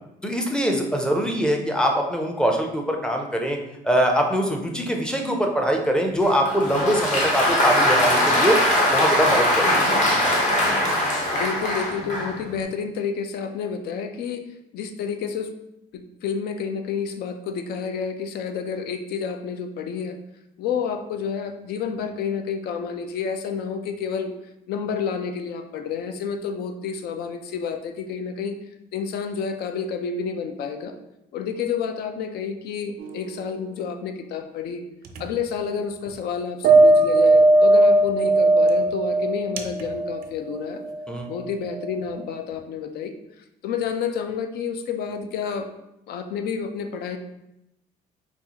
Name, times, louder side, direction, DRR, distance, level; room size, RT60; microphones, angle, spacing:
voice 1, 0.2-3.6 3.8-8.5 8.9-9.7 10.1-10.3 41.1-41.3, equal, 5° left, 2 dB, 0.5 m, -23 dB
Applause, 6.2-12.4, left 1 dB, 45° left, 1.0 m, -21 dB
voice 2, 6.8-7.2 11.3-14.4 14.7-15.5 15.9-20.2 20.6-24.3 24.7-28.6 28.9-31.0 31.3-34.8 35.2-40.8 41.3-43.1 43.6-45.7 46.1-47.2, left 6 dB, 70° left, 7 dB, 0.4 m, -29 dB
sound 1, 33.0-33.4 35.1-35.2 36.6-41.0 41.7-41.9, right 2 dB, 60° right, 0.4 m, -18 dB
4.0 x 2.4 x 2.8 m, 0.86 s
cardioid pair, 110°, 17 cm